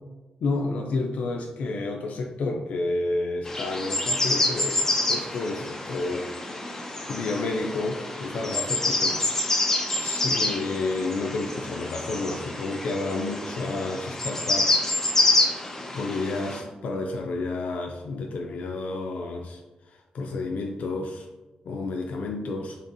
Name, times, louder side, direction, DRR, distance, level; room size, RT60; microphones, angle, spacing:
voice 1, 0.4-4.8 5.1-9.5 9.9-14.8 15.9-19.6 19.9-21.3 21.7-22.8, left 3 dB, 75° left, 1 dB, 0.4 m, -30 dB
sound 1, 3.5-16.6, left 2 dB, 20° left, 0.5 m, -27 dB
4.1 x 3.3 x 2.6 m, 1.1 s
wide cardioid pair, 125°, 3 cm